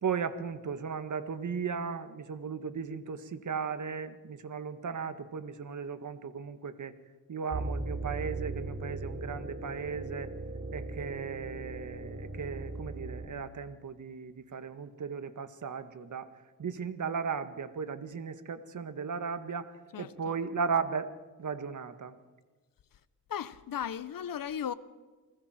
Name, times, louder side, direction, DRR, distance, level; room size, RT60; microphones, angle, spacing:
voice 1, 0.0-6.9 7.3-10.3 10.7-16.3 16.6-21.1 21.4-22.1, right 6 dB, 55° right, 1.8 m, -36 dB
sound 1, 7.5-13.3, right 2 dB, 40° right, 4.3 m, -38 dB
voice 2, 19.9-20.3 23.3-24.7, left 9 dB, 65° left, 1.2 m, -36 dB
29.0 x 20.0 x 4.5 m
cardioid pair, 65°, 36 cm